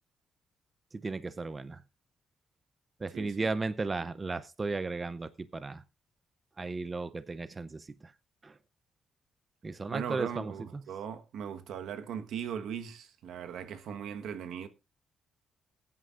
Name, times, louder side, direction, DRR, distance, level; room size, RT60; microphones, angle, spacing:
voice 1, 0.9-1.8 3.0-5.8 6.6-8.1 8.4-8.5 9.6-10.8, right 3 dB, 25° right, 0.5 m, -35 dB
voice 2, 3.1-3.5 9.9-14.7, right 8 dB, 80° right, 1.2 m, -39 dB
20.5 x 9.5 x 2.4 m
cardioid pair, 145°, 0 cm